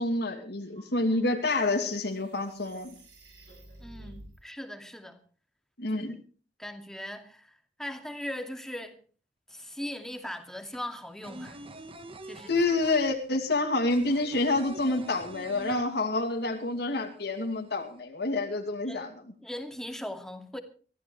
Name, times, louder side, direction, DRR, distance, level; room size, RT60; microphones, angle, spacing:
voice 1, 0.0-2.9 5.8-6.2 12.5-19.1, left 2 dB, 65° left, 2.7 m, -28 dB
sound 1, 0.6-4.4, right 1 dB, 80° right, 7.8 m, -52 dB
voice 2, 3.8-5.2 5.9-6.2 6.6-9.0 9.5-11.6 12.2-12.5 18.8-19.1 19.4-20.6, left 1 dB, 5° left, 2.4 m, -39 dB
sound 2, 9.5-9.6 9.8-16.4 16.7-16.8 17.1-17.9, right 2 dB, 30° right, 1.3 m, -46 dB
23.5 x 15.0 x 3.3 m
head